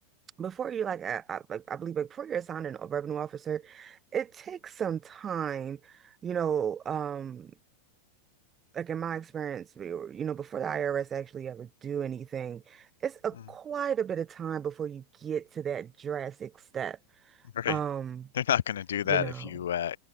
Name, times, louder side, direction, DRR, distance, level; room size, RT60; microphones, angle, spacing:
voice 1, 0.4-7.5 8.7-17.0 17.7-18.3 19.1-19.4, right 8 dB, 25° right, 1.0 m, -34 dB
voice 2, 18.3-20.0, left 10 dB, 65° left, 0.3 m, -29 dB
figure-of-eight pair, 90°, 0 cm